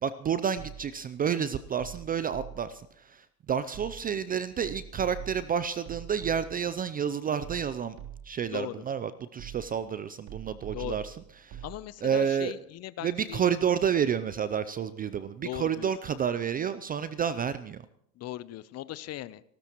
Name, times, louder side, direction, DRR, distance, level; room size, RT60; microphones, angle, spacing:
voice 1, 0.0-8.0 8.2-11.1 11.4-11.6 12.0-12.5 13.0-17.9, right 8 dB, 20° right, 15 dB, 0.5 m, -30 dB
sound 1, 0.6-1.1 1.8-2.8 3.7-4.3 4.6-6.7 7.4-8.5 9.4-9.9 10.3-11.8, right 10 dB, 50° right, 3.5 m, -44 dB
voice 2, 8.4-8.8 10.7-11.0 11.6-13.4 15.4-15.9 18.2-19.4, left 14 dB, 30° left, 17 dB, 0.7 m, -38 dB
27.5 x 13.0 x 3.0 m, 0.72 s
hypercardioid pair, 100°, 50 cm